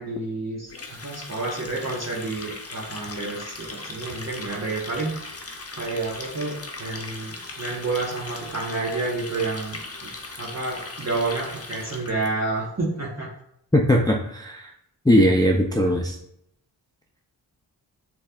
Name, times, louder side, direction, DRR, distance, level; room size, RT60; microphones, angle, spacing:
voice 1, 0.0-5.1 5.8-10.1 10.4-13.3, right 3 dB, 35° right, -4 dB, 1.4 m, -29 dB
Water tap faucet, 0.7-12.3, left 3 dB, 30° left, 0.9 m, -38 dB
voice 2, 13.7-14.7 15.0-16.2, equal, 10° left, 1 dB, 0.6 m, -19 dB
6.6 x 3.2 x 2.4 m, 0.76 s
cardioid pair, 40°, 45 cm